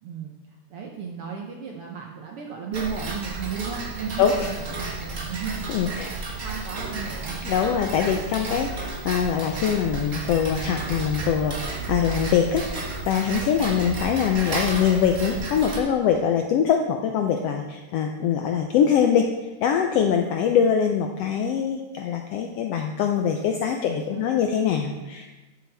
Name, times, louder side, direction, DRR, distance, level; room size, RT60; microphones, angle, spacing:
voice 1, 0.0-0.3 0.7-5.7 6.3-7.7 23.9-24.3, right 6 dB, 70° right, 1 dB, 1.3 m, -35 dB
Tick-tock, 2.7-15.8, right 3 dB, 40° right, 1.1 m, -32 dB
voice 2, 4.2-4.5 5.7-6.1 7.4-25.3, left 7 dB, 80° left, 4 dB, 1.4 m, -23 dB
13.0 x 7.0 x 3.4 m, 1.2 s
omnidirectional pair, 3.4 m